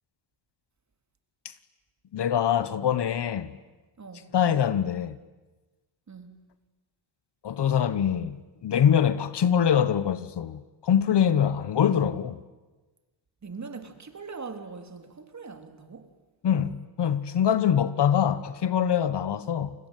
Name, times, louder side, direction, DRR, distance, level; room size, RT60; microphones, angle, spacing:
voice 1, 2.1-3.5 4.3-5.2 7.4-12.4 16.4-19.7, left 9 dB, 60° left, 1.4 m, -24 dB
voice 2, 4.0-4.3 6.1-6.4 13.4-16.1, right 4 dB, 35° right, 3.6 m, -41 dB
29.5 x 21.5 x 9.3 m
cardioid pair, 85°, 46 cm